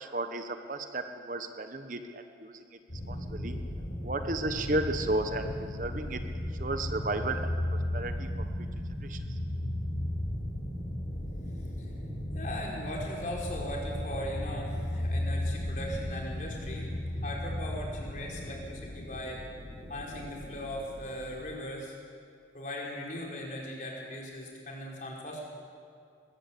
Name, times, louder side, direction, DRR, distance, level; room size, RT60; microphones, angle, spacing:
voice 1, 0.0-2.6 3.1-3.6 4.0-8.3 9.0-9.2, right 2 dB, 45° right, 7 dB, 1.1 m, -34 dB
sound 1, 2.9-21.7, left 1 dB, 65° left, 4.8 m, -35 dB
voice 2, 12.3-16.9 17.2-19.4 19.9-21.9 22.5-25.4, left 1 dB, 45° left, -2 dB, 4.5 m, -39 dB
21.5 x 14.5 x 8.6 m, 2.3 s
head